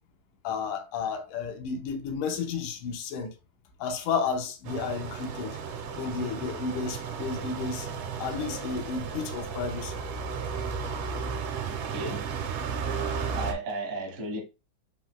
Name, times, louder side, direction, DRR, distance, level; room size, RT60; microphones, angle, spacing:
voice 1, 0.4-3.3 3.8-5.6 6.0-7.9 8.2-10.0, left 5 dB, 90° left, 2.4 m, -32 dB
sound 1, 4.6-13.5, right 6 dB, 80° right, 2.3 m, -34 dB
voice 2, 11.6-12.5 13.3-14.4, right 2 dB, 55° right, 0.7 m, -35 dB
5.8 x 3.9 x 2.2 m
omnidirectional pair, 3.6 m